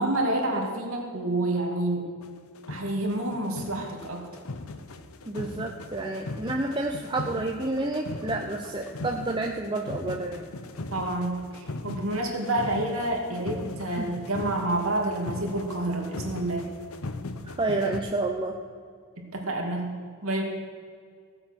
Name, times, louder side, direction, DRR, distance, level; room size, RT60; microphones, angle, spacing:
voice 1, 0.0-2.1 2.7-4.2 10.9-16.6 19.2-19.9 20.2-20.4, right 1 dB, 75° right, 1 dB, 2.5 m, -28 dB
sound 1, 2.2-2.3 2.6-18.0, left 2 dB, 80° left, 0.8 m, -39 dB
voice 2, 5.3-10.5 13.9-14.1 17.6-18.6, right 2 dB, 20° right, 2 dB, 0.7 m, -29 dB
17.0 x 7.8 x 6.2 m, 2.1 s
head